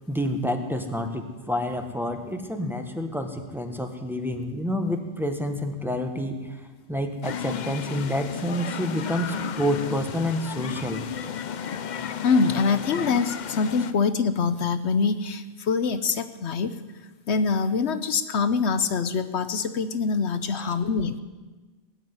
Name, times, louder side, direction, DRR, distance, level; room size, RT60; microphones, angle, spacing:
voice 1, 0.1-6.6 6.9-11.0 20.5-20.7, equal, ahead, 5 dB, 1.3 m, -28 dB
sound 1, 7.2-13.9, left 8 dB, 50° left, 0.6 m, -33 dB
voice 2, 12.2-16.8 17.3-21.2, left 5 dB, 65° left, 11 dB, 1.0 m, -24 dB
18.0 x 7.9 x 9.5 m, 1.3 s
omnidirectional pair, 1.3 m